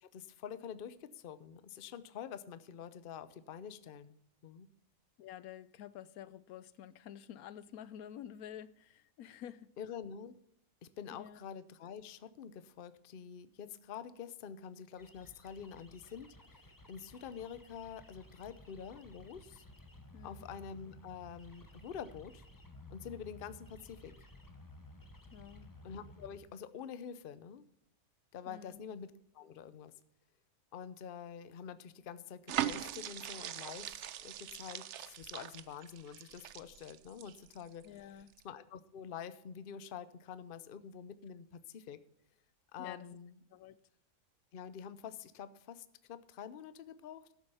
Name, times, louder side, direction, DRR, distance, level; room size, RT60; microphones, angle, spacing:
voice 1, 0.0-4.2 4.4-4.7 9.8-10.4 10.8-19.6 20.2-22.4 22.9-24.1 25.8-27.7 28.3-29.9 30.7-37.9 38.4-42.0 42.7-43.3 44.5-47.3, left 7 dB, 50° left, 0.8 m, -47 dB
voice 2, 5.2-9.7 11.1-11.4 20.1-20.5 25.3-25.7 28.4-28.9 37.8-38.3 42.8-43.2 43.5-43.8, left 10 dB, 80° left, 1.1 m, -50 dB
sound 1, 15.0-26.4, left 1 dB, 15° left, 1.0 m, -56 dB
sound 2, 32.5-37.9 38.3-38.4, right 11 dB, 60° right, 0.8 m, -41 dB
13.0 x 7.6 x 5.5 m
omnidirectional pair, 1.5 m